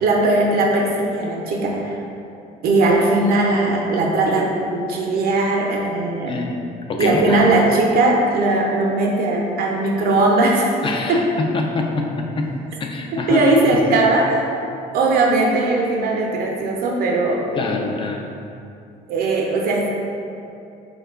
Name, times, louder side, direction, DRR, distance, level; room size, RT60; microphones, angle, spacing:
voice 1, 0.0-2.0 2.6-6.4 7.0-10.7 11.1-11.2 13.3-14.5 14.9-17.4 19.1-19.9, right 2 dB, 65° right, -1 dB, 0.5 m, -19 dB
voice 2, 6.9-7.4 10.8-12.5 12.8-13.4 13.7-14.0 17.6-18.2, left 3 dB, 30° left, 2 dB, 0.4 m, -25 dB
3.6 x 2.2 x 3.4 m, 2.6 s
cardioid pair, 110°, 17 cm